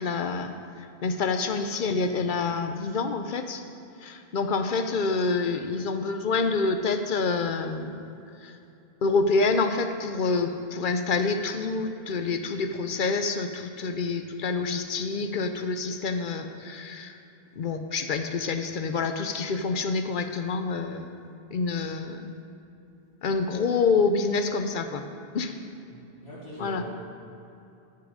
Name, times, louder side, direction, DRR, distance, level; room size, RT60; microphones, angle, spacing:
voice 1, 0.0-3.6 4.0-8.0 8.4-8.6 9.0-17.2 17.6-21.1 21.5-22.3 23.2-25.1 25.3-25.5 26.6-26.9, left 4 dB, 60° left, 7 dB, 0.7 m, -27 dB
voice 2, 25.9-26.9, left 1 dB, 85° left, -7 dB, 2.2 m, -41 dB
14.0 x 5.7 x 5.0 m, 2.8 s
omnidirectional pair, 1.1 m